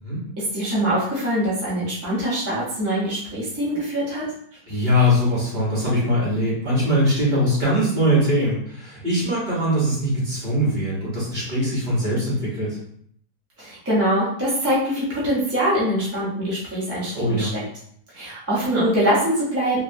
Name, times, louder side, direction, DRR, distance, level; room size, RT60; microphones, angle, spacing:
voice 1, 0.4-4.3 13.6-17.6 18.1-19.8, equal, 15° right, -9 dB, 0.5 m, -23 dB
voice 2, 4.7-12.8 17.1-17.5, equal, 30° right, -7 dB, 1.1 m, -22 dB
3.2 x 2.3 x 2.6 m, 0.64 s
omnidirectional pair, 1.8 m